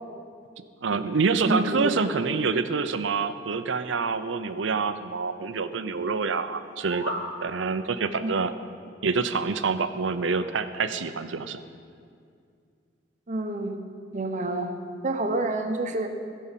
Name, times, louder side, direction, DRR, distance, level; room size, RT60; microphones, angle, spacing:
voice 1, 0.8-7.1 7.4-8.5 9.0-11.6, right 4 dB, 80° right, 11 dB, 0.6 m, -26 dB
voice 2, 1.4-2.1 8.2-8.3 13.3-13.8 14.1-14.7 15.0-16.1, right 2 dB, 40° right, 5 dB, 1.0 m, -28 dB
sound 1, 6.6-7.3, left 1 dB, 75° left, 2.4 m, -34 dB
16.0 x 5.5 x 7.4 m, 2.3 s
head